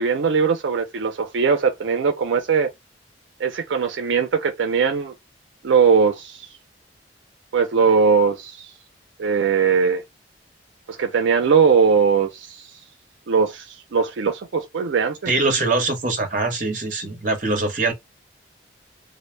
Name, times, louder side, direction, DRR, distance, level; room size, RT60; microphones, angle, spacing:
voice 1, 0.0-2.7 3.4-5.1 5.6-6.5 7.5-8.7 9.2-10.0 10.9-12.6 13.3-15.3, right 5 dB, 80° right, 0.4 m, -20 dB
voice 2, 15.3-17.9, right 3 dB, 45° right, 0.8 m, -22 dB
2.1 x 2.0 x 3.1 m
head